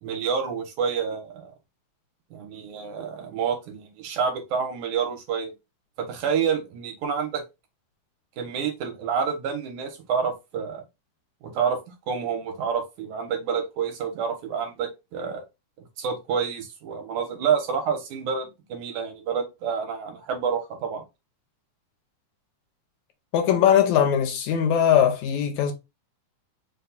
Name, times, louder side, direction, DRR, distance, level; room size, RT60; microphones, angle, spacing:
voice 1, 0.0-1.5 2.3-5.5 6.0-7.4 8.4-10.8 11.4-11.8 12.1-15.4 16.0-21.0, right 6 dB, 80° right, 2.5 m, -28 dB
voice 2, 23.3-25.7, left 9 dB, 75° left, 2.1 m, -20 dB
5.2 x 2.3 x 4.0 m
omnidirectional pair, 3.5 m